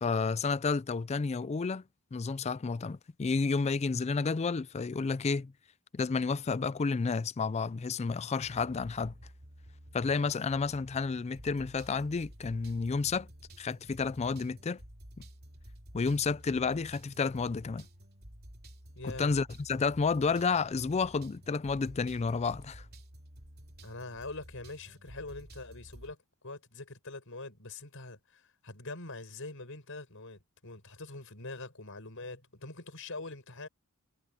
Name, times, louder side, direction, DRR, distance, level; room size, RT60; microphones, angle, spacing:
voice 1, 0.0-1.8 2.1-5.5 5.9-9.1 9.9-13.3 13.6-14.8 15.9-17.9 19.0-22.9, left 4 dB, 30° left, 0.4 m, -31 dB
sound 1, 8.4-26.1, equal, 50° right, 3.1 m, -52 dB
voice 2, 18.9-19.4 23.8-33.7, left 2 dB, 65° left, 6.6 m, -44 dB
head